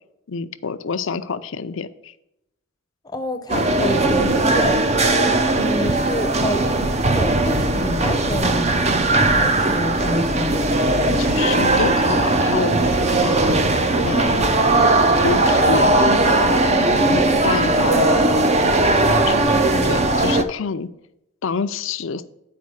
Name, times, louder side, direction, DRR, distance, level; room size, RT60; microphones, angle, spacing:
voice 1, 0.3-2.1 11.2-13.6 14.0-14.7 15.1-18.5 19.1-20.9 21.4-22.2, left 5 dB, 60° left, 0.5 m, -27 dB
voice 2, 3.0-4.8 5.2-8.9 9.3-10.8, left 1 dB, 20° left, 0.6 m, -28 dB
sound 1, 3.5-20.4, right 2 dB, 30° right, 0.5 m, -18 dB
8.4 x 5.0 x 6.2 m
head